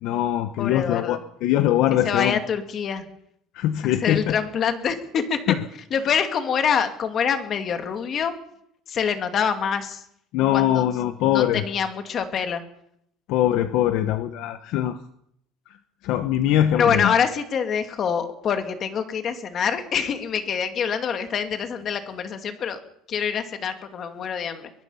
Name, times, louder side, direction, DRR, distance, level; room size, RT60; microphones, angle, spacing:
voice 1, 0.0-2.4 3.5-4.4 5.5-5.6 10.3-11.6 13.3-15.0 16.0-17.1, left 12 dB, 55° left, 10 dB, 1.1 m, -22 dB
voice 2, 0.6-1.2 2.0-3.0 3.8-5.4 5.9-8.3 8.9-10.0 10.5-10.8 11.3-12.6 16.7-22.8 23.1-24.7, left 7 dB, 30° left, 7 dB, 2.3 m, -25 dB
22.5 x 21.5 x 5.7 m, 0.72 s
cardioid pair, 170°, 0 cm